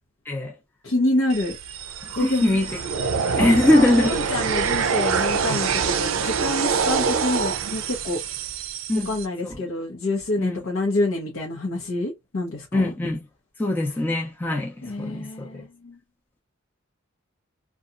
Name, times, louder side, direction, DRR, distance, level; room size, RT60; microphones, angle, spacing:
voice 1, 0.8-1.6 2.2-2.5 3.3-8.4 9.0-12.9 14.8-16.0, left 2 dB, 85° left, 0.8 m, -27 dB
sound 1, 1.3-9.3, right 6 dB, 80° right, 0.4 m, -25 dB
voice 2, 2.2-2.7 3.2-4.1 8.9-9.1 9.4-9.6 10.4-10.6 12.7-13.2 13.6-15.6, left 1 dB, 10° left, 0.5 m, -22 dB
2.8 x 2.3 x 2.4 m
head